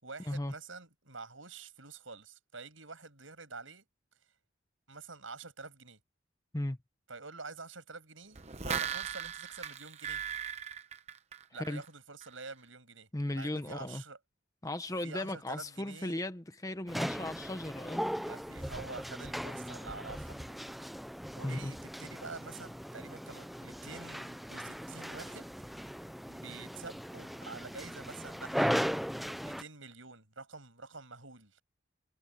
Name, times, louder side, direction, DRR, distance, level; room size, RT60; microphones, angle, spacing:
voice 1, 0.0-3.9 4.9-6.0 7.1-10.2 11.5-14.2 15.0-16.2 18.2-20.6 21.4-25.5 26.3-28.7 29.4-31.6, right 4 dB, 85° right, 7.4 m, -47 dB
sound 1, 8.3-11.9 12.2-12.3, right 7 dB, 35° right, 0.9 m, -38 dB
voice 2, 13.1-14.0 14.6-18.0 21.4-21.7, left 1 dB, 15° left, 0.8 m, -36 dB
sound 2, 16.9-29.6, equal, ahead, 0.5 m, -38 dB
head